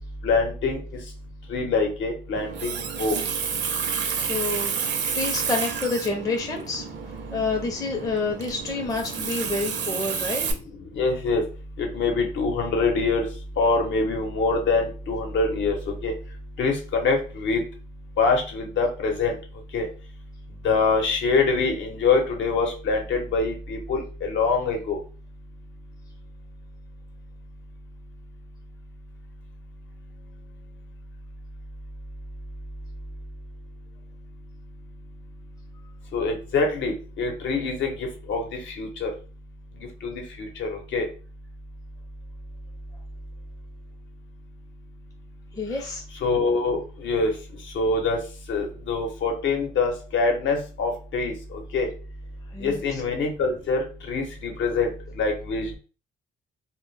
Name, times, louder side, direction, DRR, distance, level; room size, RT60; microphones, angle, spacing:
voice 1, 0.2-0.8 1.5-2.7 3.0-3.1 11.0-11.4 11.8-13.3 13.6-15.8 16.0-16.1 16.6-17.6 18.2-19.3 19.7-19.9 20.6-25.0 36.1-38.4 38.8-39.1 40.0-40.1 40.4-41.1 46.2-47.3 47.8-48.2 48.5-51.3 51.7-51.9 52.6-54.9 55.2-55.8, left 4 dB, 70° left, 3 dB, 0.8 m, -24 dB
Water tap faucet, 2.3-10.5, right 7 dB, 60° right, 0.5 m, -30 dB
voice 2, 4.1-6.9 7.3-10.5 45.5-46.0 52.5-53.0, left 3 dB, 15° left, 1 dB, 0.5 m, -29 dB
2.1 x 2.0 x 3.1 m, 0.36 s
cardioid pair, 90°, 20 cm